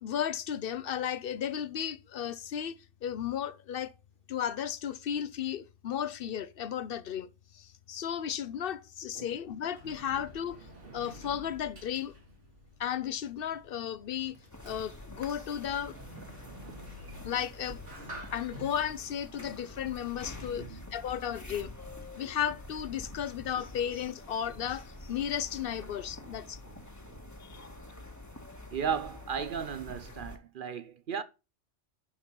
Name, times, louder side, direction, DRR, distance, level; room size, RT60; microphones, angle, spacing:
voice 1, 0.0-2.7 3.0-3.9 4.3-10.6 10.9-12.2 12.8-14.4 14.6-16.0 17.2-17.8 18.1-21.7 22.2-26.6 27.4-27.6, left 9 dB, 60° left, 0.8 m, -34 dB
Sliding door, 9.3-20.6, equal, 85° right, 3.0 m, -50 dB
sound 1, 14.5-30.4, left 2 dB, 15° left, 1.3 m, -47 dB
voice 2, 20.5-20.9 27.0-27.2 28.7-31.2, right 7 dB, 55° right, 0.7 m, -36 dB
11.0 x 5.5 x 4.5 m
omnidirectional pair, 1.2 m